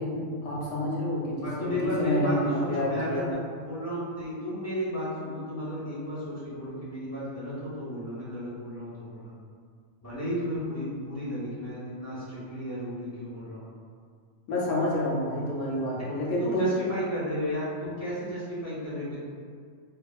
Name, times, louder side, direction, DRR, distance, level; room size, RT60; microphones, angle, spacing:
voice 1, 0.0-3.4 14.5-16.8, left 1 dB, 65° left, -6 dB, 0.9 m, -28 dB
voice 2, 1.4-3.3 3.6-9.3 10.0-13.7 16.4-19.2, equal, 15° left, -11 dB, 0.6 m, -33 dB
2.6 x 2.3 x 2.3 m, 2.1 s
omnidirectional pair, 1.4 m